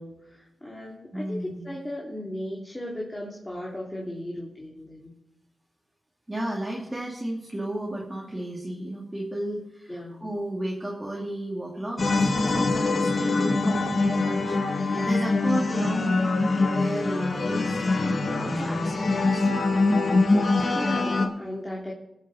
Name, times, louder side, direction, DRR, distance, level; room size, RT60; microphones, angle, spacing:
voice 1, 0.0-5.1 9.9-10.3 20.7-21.9, left 1 dB, 20° left, -3 dB, 3.0 m, -36 dB
voice 2, 1.1-1.8 6.3-17.8 18.0-19.5, right 1 dB, 20° right, -3 dB, 2.5 m, -33 dB
sound 1, 12.0-21.3, left 3 dB, 60° left, 1.8 m, -24 dB
19.5 x 7.5 x 4.2 m, 0.85 s
cardioid pair, 60°, 0 cm